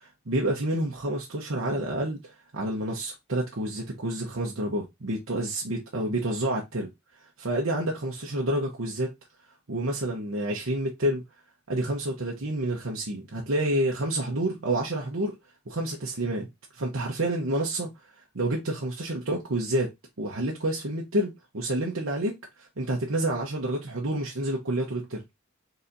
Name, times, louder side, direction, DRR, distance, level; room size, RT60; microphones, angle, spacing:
voice 1, 0.0-6.9 7.4-9.1 9.7-11.2 11.7-15.3 15.7-16.5 16.7-17.9 18.3-19.9 20.2-25.2, right 1 dB, 70° right, 1.0 m, -29 dB
4.3 x 4.0 x 2.7 m
head